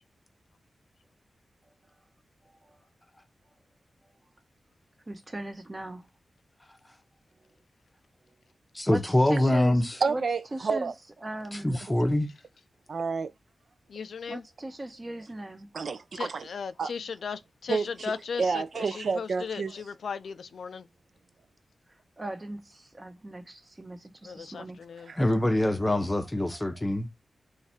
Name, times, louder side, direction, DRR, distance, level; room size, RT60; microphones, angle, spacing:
voice 1, 5.1-6.1 8.9-10.2 10.5-10.9 11.2-11.8 14.3-15.7 22.2-24.8, right 1 dB, 30° right, 0.9 m, -38 dB
voice 2, 8.7-10.0 11.5-12.3 25.2-27.1, left 1 dB, 15° left, 0.6 m, -24 dB
voice 3, 10.0-10.9 11.7-12.0 12.9-13.3 15.7-16.5 16.8-16.9 17.7-19.9 25.1-25.2, right 5 dB, 70° right, 0.4 m, -30 dB
voice 4, 13.9-14.4 16.2-20.8 24.2-25.1, left 6 dB, 85° left, 0.3 m, -37 dB
3.2 x 2.4 x 4.2 m
wide cardioid pair, 80°, 0 cm